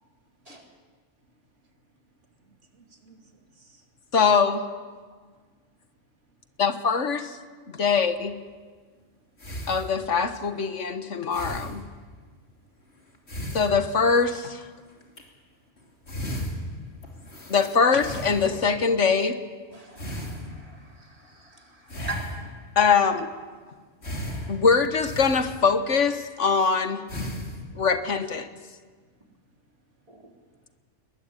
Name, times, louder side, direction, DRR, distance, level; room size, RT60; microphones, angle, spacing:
voice 1, 2.4-3.9 13.2-13.3 20.6-21.0 24.0-24.1 29.1-29.2, right 3 dB, 75° right, 3 dB, 3.0 m, -60 dB
voice 2, 4.1-4.7 6.6-7.4 7.7-8.4 9.7-11.8 13.5-14.6 17.5-19.4 22.8-23.3 24.5-27.0 27.8-28.5, left 5 dB, 80° left, 10 dB, 1.8 m, -22 dB
sound 1, 8.3-8.4 9.4-10.3 11.3-12.1 13.1-14.4 15.0-15.2 15.8-15.9 16.0-18.9 20.0-20.9 21.9-22.8 24.0-25.9 26.5-26.7 27.1-27.6, equal, 60° left, 3.4 m, -36 dB
voice 3, 19.7-21.6 22.1-22.2 30.1-30.2, right 3 dB, 30° right, 1 dB, 4.1 m, -41 dB
22.0 x 21.0 x 9.9 m, 1.5 s
omnidirectional pair, 1.2 m